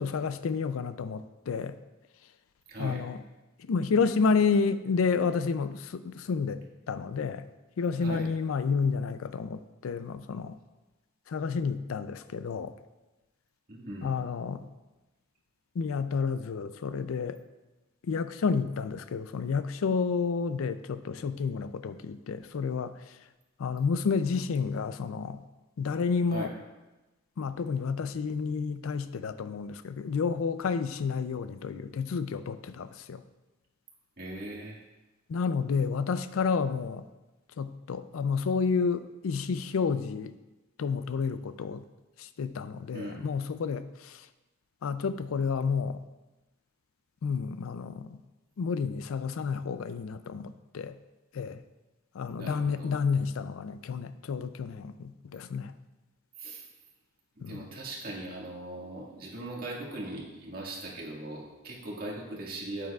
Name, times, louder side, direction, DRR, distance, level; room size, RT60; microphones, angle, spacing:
voice 1, 0.0-1.7 2.8-3.2 3.6-6.6 6.9-7.4 7.8-10.6 11.3-12.7 14.0-14.6 15.8-17.4 18.0-23.2 23.6-25.4 25.8-26.5 27.4-33.2 35.3-37.1 37.6-40.4 40.8-41.8 42.2-44.3 44.8-46.0 47.2-48.2 48.6-51.0 51.3-51.6 52.1-55.7 57.4-57.7, left 5 dB, 85° left, 13 dB, 0.4 m, -30 dB
voice 2, 2.7-3.0 8.0-8.3 13.7-14.1 26.3-26.5 34.2-34.8 42.9-43.2 52.3-52.9 56.4-56.6 57.4-62.9, right 1 dB, 50° right, -3 dB, 1.7 m, -39 dB
8.9 x 8.8 x 2.3 m, 1.1 s
head